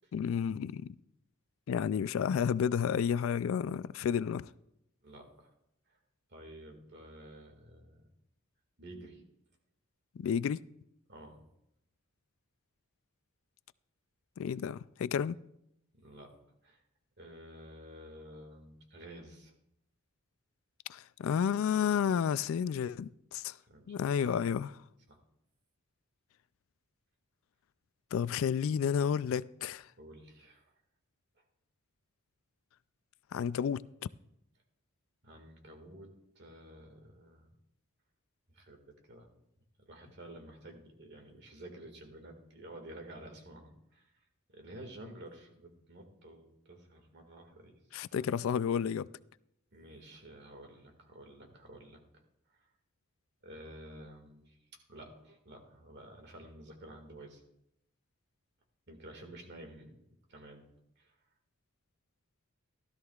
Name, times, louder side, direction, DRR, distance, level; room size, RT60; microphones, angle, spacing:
voice 1, 0.1-0.9 1.7-4.5 10.2-10.6 14.4-15.4 20.9-23.6 23.9-24.8 28.1-29.9 33.3-33.8 47.9-49.1, left 7 dB, 65° left, 0.3 m, -31 dB
voice 2, 5.0-5.5 6.3-8.1 8.8-9.2 11.1-11.4 16.0-16.4 16.6-16.8 17.2-19.5 23.7-24.4 25.1-25.2 30.0-30.7 35.2-37.5 38.5-39.3 39.9-44.1 44.5-47.8 48.2-48.4 49.7-52.0 53.4-54.6 54.9-57.4 58.9-59.9 60.3-60.6 61.0-61.1, right 1 dB, 50° right, 1.9 m, -51 dB
16.0 x 13.0 x 2.4 m
head